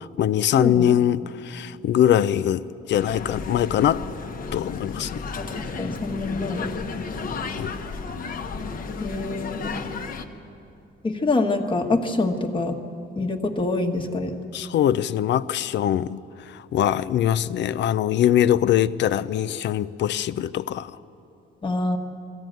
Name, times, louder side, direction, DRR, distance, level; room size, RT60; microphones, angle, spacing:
voice 1, 0.0-4.1 4.5-5.2 7.6-7.7 14.5-21.0, left 10 dB, 60° left, 0.5 m, -22 dB
voice 2, 0.6-0.9 5.4-6.7 9.0-9.8 11.0-12.8 13.2-14.3 21.6-22.0, left 2 dB, 25° left, 1.3 m, -25 dB
sound 1, 2.9-10.2, left 4 dB, 40° left, 1.1 m, -33 dB
20.5 x 15.0 x 9.2 m
cardioid pair, 165°, 21 cm